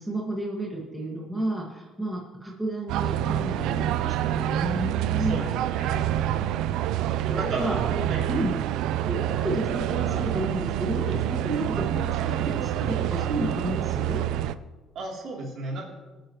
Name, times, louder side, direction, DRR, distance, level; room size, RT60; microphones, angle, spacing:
voice 1, 0.0-5.4 7.3-8.6 9.0-14.2, right 1 dB, 5° right, -4 dB, 1.9 m, -31 dB
sound 1, 2.9-14.5, right 12 dB, 90° right, 0.4 m, -27 dB
voice 2, 5.2-6.0 7.2-7.7 8.1-8.2 14.9-15.8, right 3 dB, 55° right, -2 dB, 3.3 m, -34 dB
24.0 x 9.1 x 3.1 m, 1.2 s
cardioid pair, 170°, 0 cm